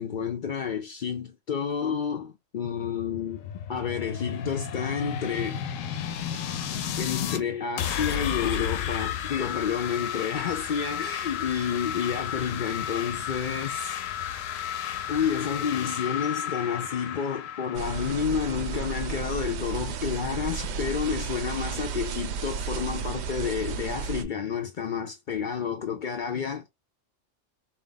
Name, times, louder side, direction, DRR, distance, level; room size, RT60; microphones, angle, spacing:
voice 1, 0.0-5.6 7.0-14.0 15.1-26.7, left 7 dB, 60° left, 0.5 m, -30 dB
sound 1, 2.8-7.4 7.8-19.3, left 9 dB, 85° left, 1.0 m, -33 dB
sound 2, 17.7-24.2, right 6 dB, 65° right, 0.8 m, -33 dB
4.0 x 2.3 x 3.8 m
omnidirectional pair, 1.3 m